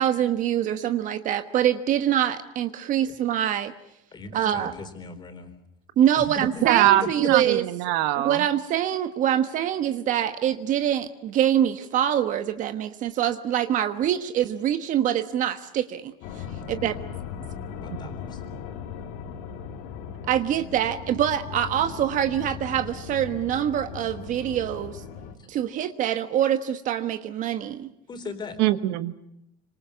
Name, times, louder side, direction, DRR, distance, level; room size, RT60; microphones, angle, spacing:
voice 1, 0.0-3.7 4.3-4.7 6.0-7.6 8.2-16.1 16.7-16.9 20.3-25.0 25.5-27.9, right 10 dB, 40° right, 9 dB, 1.3 m, -24 dB
voice 2, 4.1-5.6 6.2-6.7 7.0-7.3 17.8-18.4 25.4-25.5 28.1-28.6, left 3 dB, 25° left, 7 dB, 4.1 m, -38 dB
voice 3, 6.6-8.4 28.6-29.1, right 14 dB, 65° right, 11 dB, 1.4 m, -22 dB
sound 1, 16.2-25.3, left 7 dB, 80° left, 3.9 m, -38 dB
27.0 x 26.0 x 6.9 m, 0.79 s
cardioid pair, 150°, 19 cm